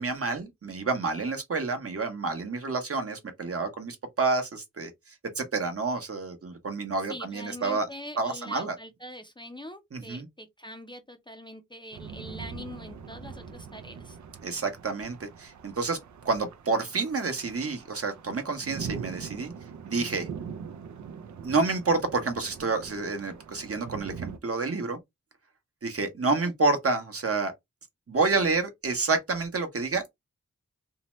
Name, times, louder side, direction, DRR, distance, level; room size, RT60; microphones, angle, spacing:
voice 1, 0.0-7.9 8.2-8.8 9.9-10.3 14.4-16.0 16.2-19.5 19.9-20.3 21.4-25.0 25.8-27.5 28.1-30.1, right 3 dB, 50° right, 0.8 m, -29 dB
voice 2, 7.1-14.2, equal, 15° left, 0.5 m, -43 dB
sound 1, 11.9-24.4, right 6 dB, 75° right, 0.4 m, -42 dB
2.7 x 2.1 x 2.9 m
wide cardioid pair, 75°, 30 cm